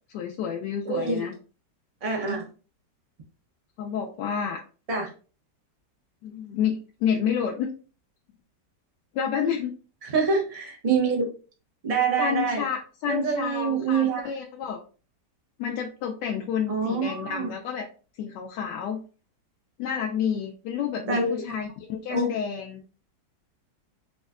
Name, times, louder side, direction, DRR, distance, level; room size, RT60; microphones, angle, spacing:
voice 1, 0.1-1.3 3.8-4.6 6.2-7.7 9.1-9.7 12.2-14.8 15.6-17.8 18.2-19.0 19.8-22.8, left 8 dB, 80° left, 0 dB, 1.2 m, -29 dB
voice 2, 0.8-1.2 2.0-2.5 4.9-5.1 10.0-11.3 11.8-12.6 13.1-14.3 16.7-17.5 21.1-21.4 22.1-22.3, right 5 dB, 45° right, 0 dB, 0.4 m, -26 dB
5.1 x 2.1 x 2.3 m, 0.36 s
omnidirectional pair, 1.9 m